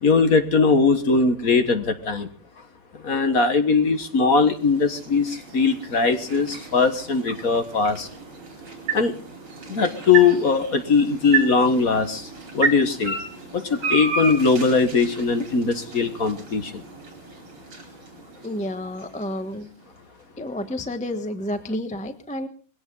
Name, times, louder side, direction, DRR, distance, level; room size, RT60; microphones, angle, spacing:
voice 1, 0.0-2.3 3.0-8.1 8.9-9.1 9.7-12.3 12.5-13.2 13.5-16.8, left 4 dB, 45° left, 1.6 m, -20 dB
sound 1, 3.8-20.0, right 5 dB, 75° right, 5.4 m, -33 dB
voice 2, 18.4-19.7 20.4-22.5, left 1 dB, 5° left, 0.7 m, -30 dB
21.0 x 17.0 x 3.9 m
omnidirectional pair, 2.4 m